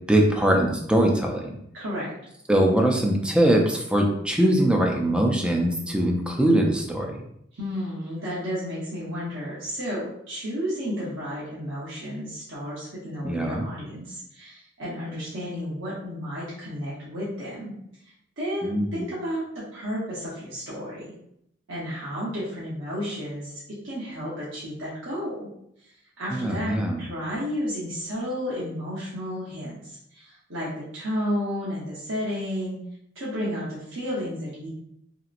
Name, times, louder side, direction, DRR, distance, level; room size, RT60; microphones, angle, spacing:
voice 1, 0.1-1.5 2.5-7.2 13.2-13.7 18.6-19.1 26.3-27.0, right 1 dB, 5° right, 0 dB, 0.4 m, -22 dB
voice 2, 1.7-2.1 7.5-17.7 18.0-21.1 21.7-25.5 25.8-25.9 26.2-32.8 33.1-34.7, equal, 70° right, -8 dB, 0.9 m, -32 dB
2.9 x 2.9 x 2.5 m, 0.74 s
head